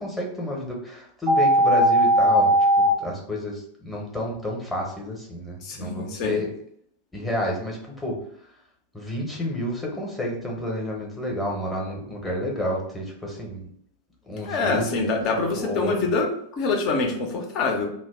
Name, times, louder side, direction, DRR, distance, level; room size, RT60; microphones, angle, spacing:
voice 1, 0.0-2.5 2.8-6.5 7.1-8.2 8.9-13.7 14.3-15.0 15.5-16.1, left 1 dB, 10° left, -2 dB, 0.8 m, -30 dB
sound 1, 1.3-2.9, right 1 dB, 25° right, 0.6 m, -18 dB
voice 2, 5.6-6.4 14.4-16.3 16.6-17.9, left 3 dB, 40° left, 2 dB, 0.6 m, -25 dB
2.5 x 2.0 x 3.5 m, 0.68 s
figure-of-eight pair, 90°, 0 cm